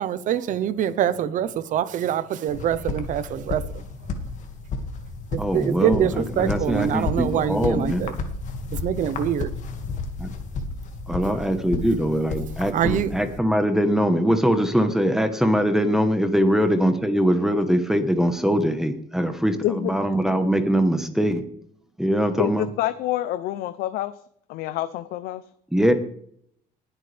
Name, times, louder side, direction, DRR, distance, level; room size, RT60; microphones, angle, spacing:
voice 1, 0.0-3.8 5.3-8.1 8.7-9.5 12.7-13.1, right 10 dB, 55° right, 0.9 m, -25 dB
sound 1, 2.5-13.4, left 3 dB, 50° left, 2.1 m, -32 dB
voice 2, 5.4-8.0 10.2-10.3 11.1-21.4 22.0-22.7 25.7-25.9, equal, 5° right, 1.2 m, -22 dB
voice 3, 22.4-24.1 24.5-25.4, left 13 dB, 80° left, 0.7 m, -27 dB
20.0 x 8.2 x 3.5 m
cardioid pair, 125°, 15 cm